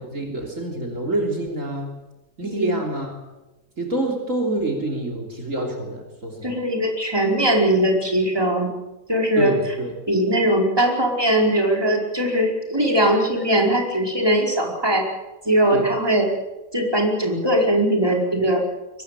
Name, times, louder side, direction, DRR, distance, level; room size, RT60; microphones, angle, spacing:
voice 1, 0.0-1.9 2.4-3.2 3.8-6.6 9.4-9.9 15.7-15.9, right 1 dB, 55° right, 2 dB, 3.8 m, -26 dB
voice 2, 6.4-8.7 9.1-9.5 10.1-15.0 15.4-16.3 16.7-18.6, right 1 dB, 15° right, 1 dB, 5.0 m, -20 dB
23.0 x 20.0 x 8.4 m, 1.1 s
omnidirectional pair, 1.6 m